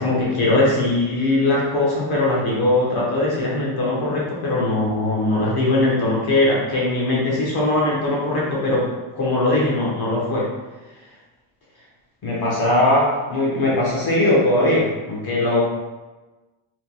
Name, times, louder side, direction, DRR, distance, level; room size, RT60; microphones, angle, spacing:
voice 1, 0.0-8.8 9.2-10.5 12.2-15.6, left 2 dB, 50° left, -5 dB, 1.3 m, -20 dB
4.6 x 4.0 x 2.3 m, 1.2 s
cardioid pair, 160°, 48 cm